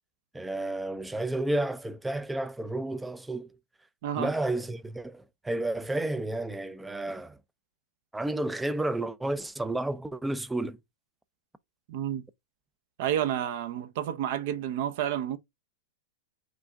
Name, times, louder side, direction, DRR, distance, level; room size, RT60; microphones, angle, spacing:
voice 1, 0.3-3.6 4.2-7.4 8.1-10.8, right 2 dB, 5° right, 0.4 m, -31 dB
voice 2, 11.9-12.2 13.0-15.4, right 10 dB, 55° right, 0.6 m, -30 dB
4.9 x 2.5 x 3.4 m
hypercardioid pair, 140°, 0 cm